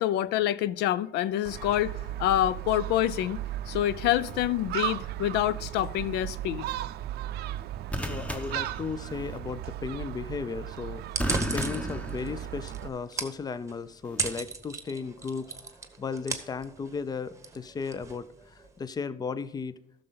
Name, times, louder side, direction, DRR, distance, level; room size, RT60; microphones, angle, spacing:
voice 1, 0.0-3.4 3.7-6.7, left 13 dB, 85° left, 0.4 m, -27 dB
Gull seagull, 1.4-12.9, right 13 dB, 70° right, 0.5 m, -36 dB
sound 1, 4.0-4.4 7.9-9.4 11.2-12.8 14.0-14.4, equal, 10° left, 1.0 m, -35 dB
voice 2, 8.1-11.0 11.5-15.5 16.0-19.8, left 5 dB, 25° left, 0.5 m, -35 dB
sound 2, 11.0-18.8, right 4 dB, 15° right, 1.1 m, -38 dB
13.5 x 6.5 x 3.9 m
cardioid pair, 110°, 17 cm